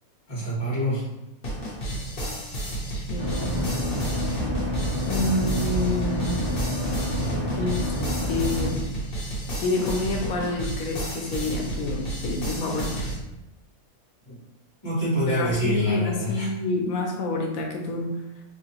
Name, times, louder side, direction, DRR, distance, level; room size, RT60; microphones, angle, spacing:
voice 1, 0.3-1.0 14.2-14.3 14.8-16.5, equal, 20° left, -9 dB, 1.5 m, -26 dB
sound 1, 1.4-13.2, right 1 dB, 45° left, 1.0 m, -32 dB
voice 2, 2.9-3.8 5.1-6.4 7.6-7.9 8.3-8.8 9.6-13.1 15.3-18.1, left 2 dB, 75° left, 1 dB, 1.0 m, -28 dB
sound 2, 3.2-8.7, left 1 dB, 40° right, 0.4 m, -28 dB
3.2 x 2.7 x 2.9 m, 0.94 s
omnidirectional pair, 1.5 m